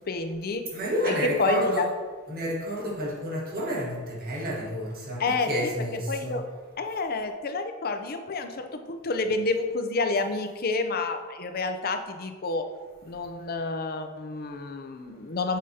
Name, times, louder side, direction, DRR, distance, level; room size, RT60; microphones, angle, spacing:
voice 1, 0.0-0.6 1.0-1.9 5.2-5.5 5.9-6.4 6.8-12.7 13.0-15.6, left 3 dB, 45° left, 0.5 m, -29 dB
voice 2, 0.7-1.9 2.3-6.5, equal, 45° right, 1.5 m, -30 dB
7.5 x 5.0 x 2.8 m
head